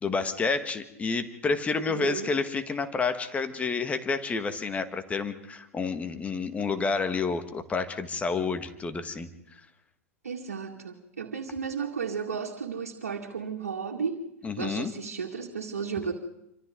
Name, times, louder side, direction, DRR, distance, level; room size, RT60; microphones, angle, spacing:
voice 1, 0.0-9.6 14.4-14.9, left 4 dB, 15° left, 9 dB, 1.8 m, -29 dB
voice 2, 1.9-2.3 10.2-14.2 14.6-16.1, right 6 dB, 75° right, 0 dB, 2.2 m, -34 dB
27.0 x 25.0 x 3.9 m, 0.80 s
figure-of-eight pair, 100°, 8 cm